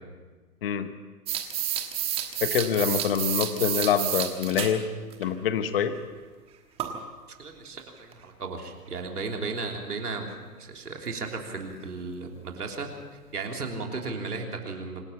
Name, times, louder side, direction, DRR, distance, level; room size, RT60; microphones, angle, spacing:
voice 1, 0.6-0.9 2.4-4.8 5.2-6.0, left 8 dB, 40° left, 11 dB, 1.1 m, -25 dB
sound 1, 1.3-4.7 5.1-5.2 6.8-7.0 8.1-8.2 11.3-11.4 11.6-11.7 12.3-12.4 12.8-12.9 13.4-13.5, right 10 dB, 10° right, 1.3 m, -30 dB
voice 2, 7.4-10.3 10.6-12.9 13.3-15.0, right 4 dB, 75° right, 2 dB, 3.5 m, -35 dB
26.0 x 11.5 x 8.6 m, 1.4 s
hypercardioid pair, 140°, 47 cm